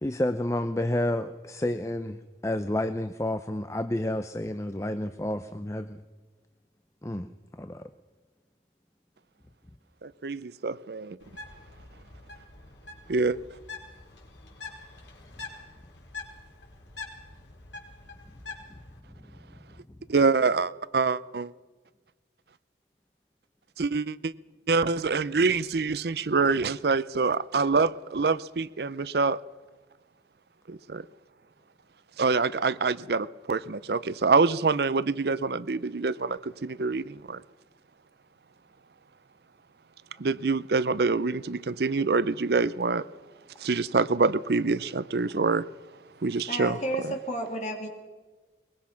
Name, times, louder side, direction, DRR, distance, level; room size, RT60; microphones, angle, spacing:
voice 1, 0.0-6.0 7.0-7.3 7.6-7.9, left 1 dB, 15° left, 0.6 m, -30 dB
voice 2, 10.0-11.2 13.1-13.4 20.1-21.5 23.8-24.3 24.7-29.4 30.7-31.0 32.2-37.4 40.2-43.1 43.6-45.7 46.2-46.7, right 4 dB, 65° right, 0.6 m, -26 dB
Bird, 11.2-19.0, left 3 dB, 90° left, 4.5 m, -45 dB
voice 3, 46.5-47.9, right 1 dB, 40° left, 3.2 m, -32 dB
22.5 x 21.0 x 5.8 m
head